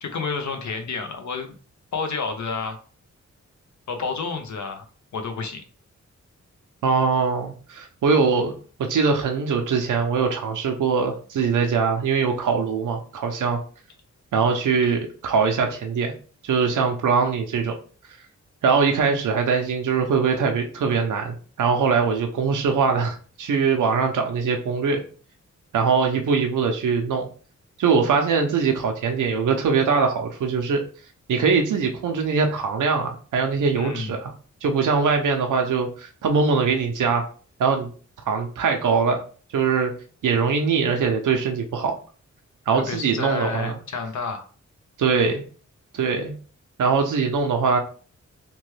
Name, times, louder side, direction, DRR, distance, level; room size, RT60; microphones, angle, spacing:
voice 1, 0.0-1.5 1.9-2.8 3.9-4.9 5.1-5.6 14.8-15.0 33.7-34.2 42.7-44.5, left 4 dB, 70° left, 6 dB, 0.6 m, -30 dB
voice 2, 6.8-8.5 8.8-13.6 14.3-16.1 16.4-17.7 18.6-25.0 25.7-27.3 27.8-30.8 31.3-34.3 34.6-37.3 37.6-37.9 38.3-39.2 39.5-39.9 40.2-41.9 42.7-43.8 45.0-45.4 45.9-46.3 46.8-47.8, right 5 dB, 85° right, 4 dB, 0.5 m, -22 dB
2.9 x 2.2 x 3.1 m, 0.40 s
wide cardioid pair, 90°, 30 cm